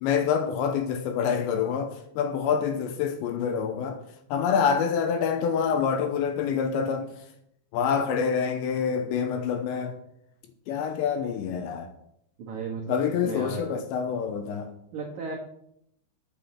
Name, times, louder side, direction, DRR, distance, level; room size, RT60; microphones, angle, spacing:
voice 1, 0.0-4.0 4.3-7.1 7.7-9.9 10.7-11.9 12.9-14.7, left 7 dB, 80° left, 2.8 m, -26 dB
voice 2, 12.4-12.9 13.2-13.7 14.9-15.4, right 4 dB, 90° right, 1.6 m, -35 dB
8.4 x 6.1 x 7.3 m
omnidirectional pair, 5.7 m